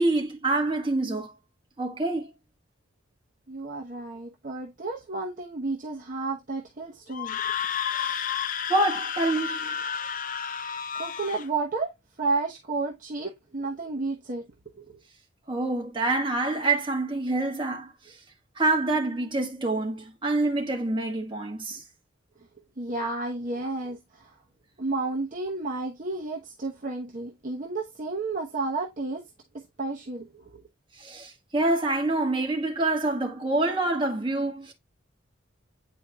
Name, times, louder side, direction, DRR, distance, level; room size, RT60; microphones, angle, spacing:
voice 1, 0.0-1.3 1.8-2.3 7.9-8.3 8.7-9.8 15.5-18.1 18.6-21.8 31.0-34.7, right 2 dB, 25° right, 1.6 m, -26 dB
voice 2, 3.5-7.5 10.9-11.9 12.2-14.5 14.8-15.0 22.8-24.4 24.8-29.3 29.5-30.6, right 3 dB, 40° right, 1.0 m, -32 dB
Screaming, 7.1-11.5, left 7 dB, 40° left, 0.5 m, -31 dB
9.1 x 4.5 x 2.3 m
head